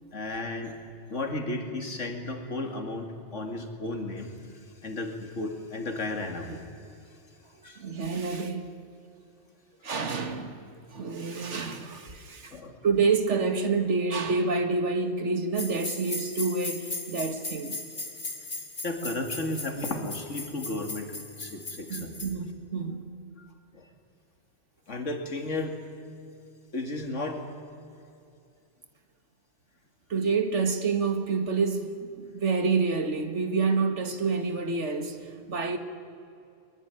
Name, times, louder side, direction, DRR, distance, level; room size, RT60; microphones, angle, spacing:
voice 1, 0.1-0.7 1.1-4.3 4.8-6.6 7.6-7.8 12.5-12.8 18.8-22.2 23.4-23.5 23.7-23.9 24.9-25.8 26.7-27.4, left 2 dB, 85° left, 2.7 m, -34 dB
voice 2, 7.8-8.7 9.8-10.6 10.9-12.6 12.8-17.8 21.9-23.1 30.1-35.8, right 4 dB, 75° right, 2.0 m, -28 dB
sound 1, 15.5-22.3, left 2 dB, 55° left, 2.7 m, -38 dB
22.0 x 22.0 x 9.9 m
omnidirectional pair, 1.2 m